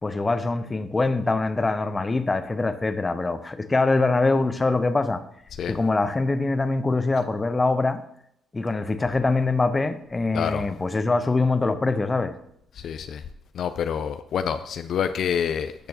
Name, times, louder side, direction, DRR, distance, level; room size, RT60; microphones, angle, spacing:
voice 1, 0.0-5.2 5.7-8.0 8.5-12.3, left 3 dB, 25° left, 11 dB, 0.8 m, -23 dB
voice 2, 12.8-13.2 13.6-15.9, left 8 dB, 65° left, 9 dB, 0.4 m, -27 dB
12.5 x 6.7 x 2.9 m, 0.73 s
supercardioid pair, 60°, 0 cm